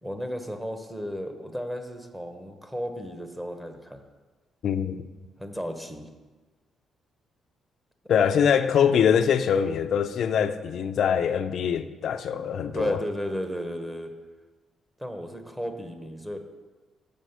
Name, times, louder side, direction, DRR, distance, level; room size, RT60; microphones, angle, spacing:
voice 1, 0.0-4.0 5.4-6.1 12.7-14.1 15.0-16.4, equal, 10° right, 1.0 m, -34 dB
voice 2, 4.6-5.0 8.1-13.0, left 7 dB, 65° left, 0.5 m, -23 dB
7.4 x 5.2 x 6.7 m
cardioid pair, 90°, 0 cm